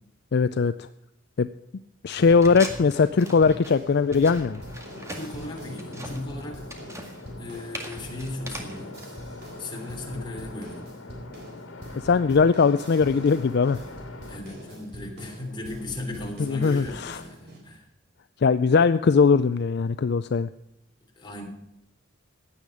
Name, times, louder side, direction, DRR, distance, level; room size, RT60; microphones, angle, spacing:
voice 1, 0.3-0.9 1.4-1.5 2.0-4.6 12.0-13.8 16.4-17.2 18.4-20.5, left 5 dB, 55° left, 12 dB, 0.4 m, -20 dB
sound 1, 2.1-9.1, right 1 dB, 15° right, 2.0 m, -40 dB
sound 2, 2.2-17.6, equal, 55° right, 3.9 m, -43 dB
sound 3, 4.3-14.8, left 2 dB, 80° left, 2.0 m, -44 dB
voice 2, 5.2-6.6 7.4-9.0 9.6-10.9 14.3-17.8 21.2-21.4, left 2 dB, 25° left, 0 dB, 3.3 m, -37 dB
16.0 x 10.0 x 4.9 m, 0.85 s
head